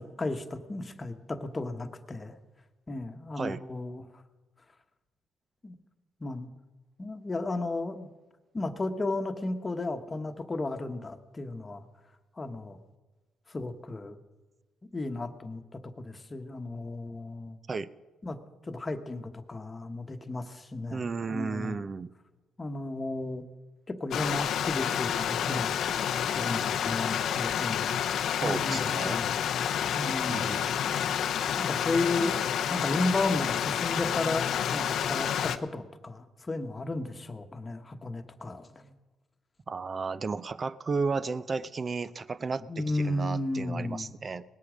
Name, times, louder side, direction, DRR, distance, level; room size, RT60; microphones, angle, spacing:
voice 1, 0.0-2.4 2.9-4.0 5.6-5.8 6.2-6.5 7.0-8.1 8.5-11.8 12.4-12.8 13.5-14.2 14.9-17.6 18.2-21.8 22.6-23.5 23.9-25.8 26.2-27.9 28.4-29.3 29.9-30.4 31.6-32.3 32.7-38.9 42.6-44.1, left 2 dB, 25° left, 7 dB, 1.2 m, -34 dB
voice 2, 20.9-22.1 28.3-29.3 30.3-30.8 39.7-44.4, right 4 dB, 35° right, 16 dB, 0.6 m, -33 dB
Stream, 24.1-35.6, left 9 dB, 75° left, 0.6 m, -29 dB
19.5 x 8.5 x 6.3 m, 1.2 s
cardioid pair, 90°, 0 cm